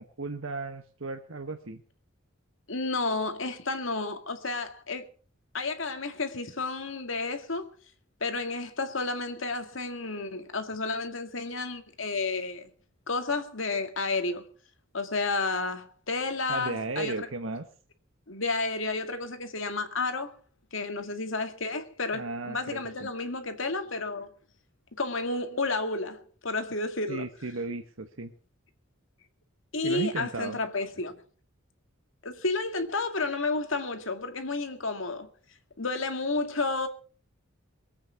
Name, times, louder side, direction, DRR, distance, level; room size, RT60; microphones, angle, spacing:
voice 1, 0.0-1.8 16.5-17.7 22.1-23.1 27.1-28.3 29.8-30.6, right 3 dB, 90° right, 1.3 m, -35 dB
voice 2, 2.7-5.1 5.5-7.7 8.2-12.7 13.1-14.5 14.9-17.3 18.3-20.3 20.7-24.3 24.9-27.3 29.7-31.1 32.2-35.3 35.8-36.9, left 3 dB, 75° left, 2.1 m, -31 dB
23.0 x 8.8 x 5.7 m
head